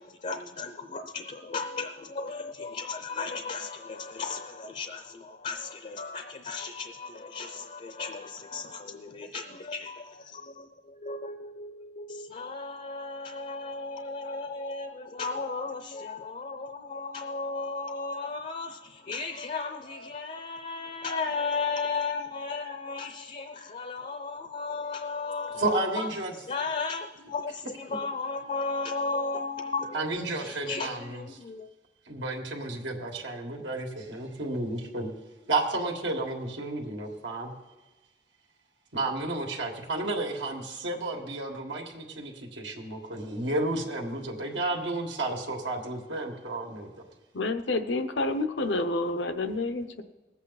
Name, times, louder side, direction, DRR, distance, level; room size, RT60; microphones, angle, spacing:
voice 1, 0.0-26.1 26.5-31.7, left 4 dB, 40° left, 0.6 m, -35 dB
voice 2, 25.5-26.3 29.9-31.2 32.1-35.1 35.5-37.5 38.9-46.9, right 2 dB, 85° right, 1.8 m, -32 dB
voice 3, 47.3-50.0, left 2 dB, 85° left, 0.8 m, -29 dB
20.0 x 8.3 x 4.1 m
head